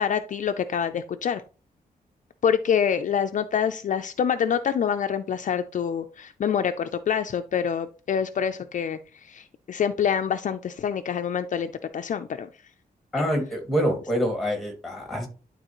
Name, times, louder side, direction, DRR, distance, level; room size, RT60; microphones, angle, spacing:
voice 1, 0.0-1.4 2.4-12.5 13.2-13.3, left 8 dB, 55° left, 8 dB, 0.4 m, -26 dB
voice 2, 13.1-15.3, equal, ahead, 3 dB, 2.2 m, -26 dB
11.5 x 4.0 x 3.0 m, 0.35 s
wide cardioid pair, 145°, 16 cm